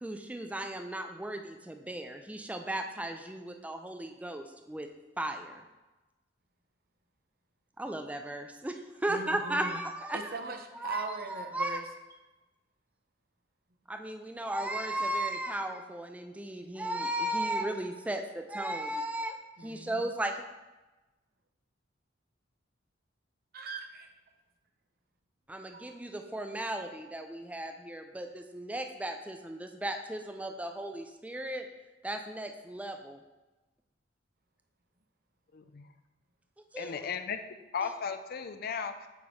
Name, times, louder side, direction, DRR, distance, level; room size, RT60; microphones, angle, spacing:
voice 1, 0.0-4.9 5.2-5.6 7.8-10.3 10.8-11.8 13.9-20.4 25.5-31.7 32.0-33.2 36.7-37.0 37.8-37.9, right 1 dB, 5° right, 5 dB, 0.4 m, -36 dB
voice 2, 9.1-9.8 10.1-11.8 19.6-20.1 23.5-24.1 25.7-26.4, right 3 dB, 50° right, 5 dB, 0.7 m, -40 dB
voice 3, 35.5-35.8 36.8-37.4 37.7-39.1, left 6 dB, 50° left, 8 dB, 0.4 m, -35 dB
8.0 x 3.0 x 4.8 m, 1.1 s
head